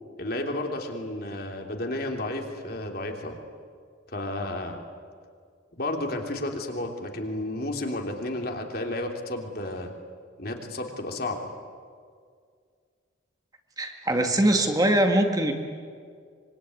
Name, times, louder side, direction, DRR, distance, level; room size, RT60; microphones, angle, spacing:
voice 1, 0.2-3.4 4.1-4.8 5.8-9.9 10.4-11.4, left 1 dB, 50° left, 3 dB, 3.2 m, -32 dB
voice 2, 13.8-15.5, right 1 dB, 20° right, 4 dB, 1.9 m, -22 dB
25.0 x 24.0 x 9.6 m, 2.1 s
head